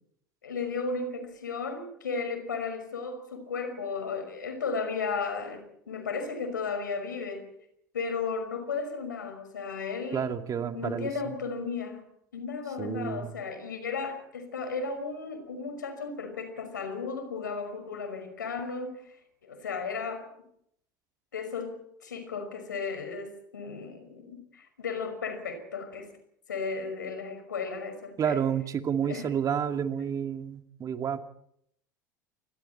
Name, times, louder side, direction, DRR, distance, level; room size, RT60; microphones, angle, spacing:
voice 1, 0.4-7.5 7.9-12.0 12.3-19.2 19.4-20.3 21.3-26.1 26.5-28.4 29.0-29.3, left 4 dB, 85° left, 8 dB, 5.7 m, -35 dB
voice 2, 10.1-11.4 12.8-13.3 28.2-31.2, right 8 dB, 35° right, 7 dB, 2.4 m, -30 dB
28.5 x 22.0 x 4.4 m, 0.70 s
hypercardioid pair, 75°, 10 cm